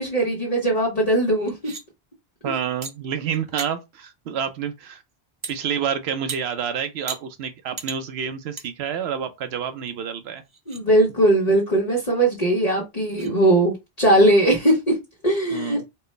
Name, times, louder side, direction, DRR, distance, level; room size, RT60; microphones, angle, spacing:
voice 1, 0.0-1.5 10.7-15.0 15.2-15.8, right 1 dB, 40° left, 1.1 m, -19 dB
sound 1, 1.5-1.8 2.8-2.9 3.3-3.7 5.4-5.6 6.3-6.4 7.1-7.2 7.8-8.0 8.6-8.7 9.1-9.2 9.9-10.0 10.5-10.8 12.5-12.6 13.1-13.3, right 4 dB, 35° right, 0.5 m, -34 dB
voice 2, 2.4-5.0 5.5-10.4 15.5-15.8, right 8 dB, 85° right, 0.8 m, -28 dB
4.4 x 2.1 x 3.1 m
omnidirectional pair, 1.0 m